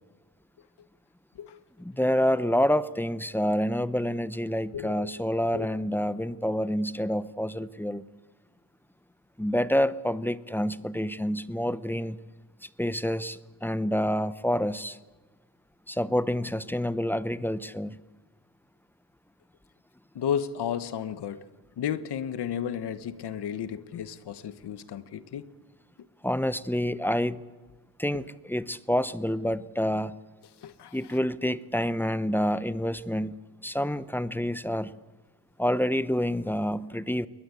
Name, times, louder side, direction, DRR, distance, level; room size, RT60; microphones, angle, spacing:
voice 1, 1.8-8.0 9.4-12.2 12.6-15.0 15.9-18.0 26.2-27.4 28.0-30.1 30.9-33.3 33.6-34.9 35.6-37.3, equal, 5° left, 16 dB, 0.8 m, -28 dB
voice 2, 4.7-5.2 5.5-5.7 20.1-21.4 21.8-25.5 30.6-31.0, left 9 dB, 85° left, 14 dB, 1.2 m, -33 dB
21.5 x 21.0 x 8.2 m, 1.3 s
cardioid pair, 90°, 39 cm